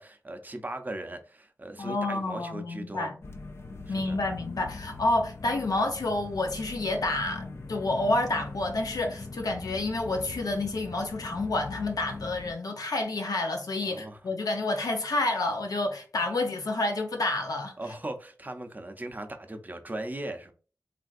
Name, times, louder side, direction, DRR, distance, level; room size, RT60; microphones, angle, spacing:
voice 1, 0.0-3.1 3.9-4.2 13.8-14.2 17.8-20.5, right 1 dB, 30° right, 0.5 m, -38 dB
voice 2, 1.8-3.2 3.9-17.7, left 2 dB, 90° left, 0.7 m, -29 dB
sound 1, 3.2-12.5, left 3 dB, 45° left, 0.4 m, -41 dB
3.4 x 2.5 x 2.4 m
wide cardioid pair, 70°, 6 cm